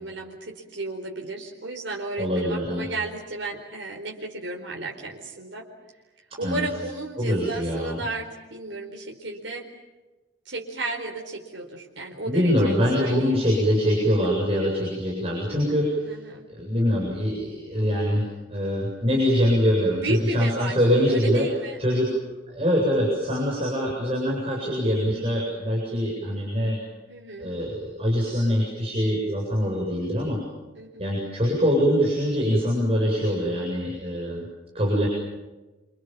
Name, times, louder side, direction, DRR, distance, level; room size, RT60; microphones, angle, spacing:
voice 1, 0.0-5.6 6.4-9.6 10.4-13.4 16.0-16.5 20.0-20.8 21.1-22.1 27.1-27.5 30.7-31.1, right 2 dB, 80° right, -1 dB, 4.5 m, -33 dB
voice 2, 2.2-2.9 6.3-6.7 7.2-8.0 12.3-16.0 16.5-21.5 21.8-22.1 22.5-26.8 27.4-30.4 31.0-34.4 34.7-35.1, equal, 30° right, -3 dB, 7.9 m, -24 dB
28.0 x 27.0 x 7.4 m, 1.1 s
head